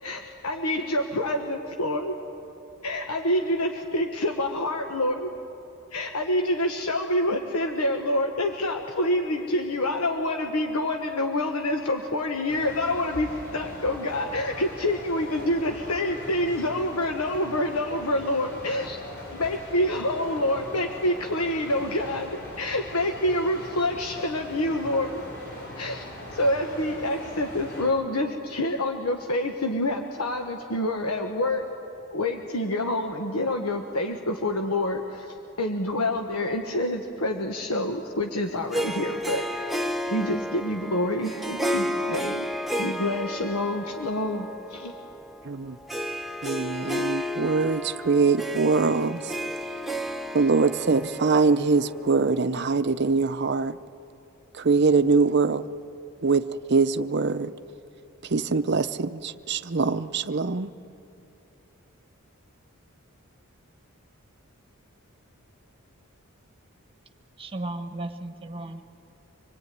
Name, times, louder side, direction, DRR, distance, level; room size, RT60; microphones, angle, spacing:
voice 1, 0.0-2.2 2.8-5.3 5.9-19.0 19.3-25.2 25.7-26.0 26.3-31.6 32.1-39.7 40.1-42.5 42.8-44.5 44.7-44.9, left 1 dB, 85° left, 4 dB, 1.3 m, -27 dB
sound 1, 12.5-27.9, equal, 50° left, 7.0 m, -41 dB
Harp, 38.7-52.4, equal, ahead, 0.8 m, -32 dB
voice 2, 45.4-45.8 46.4-49.3 50.3-53.8 54.5-55.7 56.2-57.5 58.2-60.7, right 4 dB, 50° right, 12 dB, 0.6 m, -23 dB
voice 3, 67.4-68.8, right 2 dB, 25° right, 7 dB, 1.3 m, -35 dB
25.5 x 21.0 x 9.4 m, 2.8 s
head